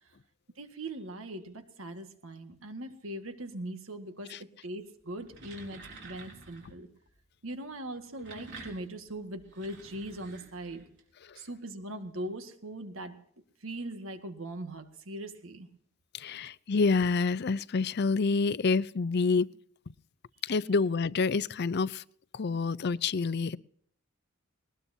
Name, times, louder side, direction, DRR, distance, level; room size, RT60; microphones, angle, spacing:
voice 1, 0.6-6.9 7.4-10.8 11.4-13.2 13.6-15.7, right 1 dB, 80° right, 7 dB, 1.8 m, -40 dB
sound 1, 5.2-6.8 7.9-11.0, right 3 dB, 60° right, 4.1 m, -49 dB
voice 2, 16.1-19.5 20.4-22.0 22.3-23.6, left 4 dB, 55° left, 18 dB, 0.5 m, -28 dB
20.5 x 19.5 x 2.8 m, 0.64 s
head